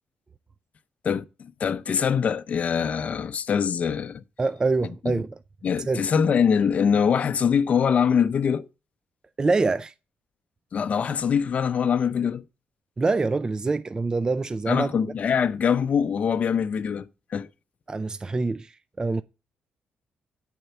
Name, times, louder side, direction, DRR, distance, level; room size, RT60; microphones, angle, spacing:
voice 1, 1.6-4.2 5.6-8.7 10.7-12.4 14.7-17.5, left 7 dB, 50° left, 0.6 m, -23 dB
voice 2, 4.4-5.4 5.9-6.0 9.4-9.9 13.0-14.9 17.9-19.2, right 3 dB, 25° right, 0.4 m, -25 dB
9.3 x 4.3 x 6.7 m
cardioid pair, 105°, 3 cm